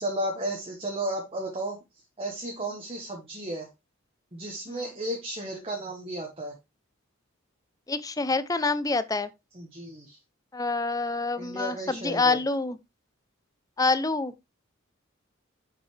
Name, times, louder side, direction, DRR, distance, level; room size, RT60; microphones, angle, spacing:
voice 1, 0.0-1.8 2.2-3.7 4.3-6.5 9.5-10.2 11.4-12.4, right 1 dB, 30° right, 1.4 m, -33 dB
voice 2, 7.9-9.3 10.5-12.8 13.8-14.3, left 3 dB, 15° left, 0.5 m, -26 dB
7.4 x 5.6 x 3.3 m
head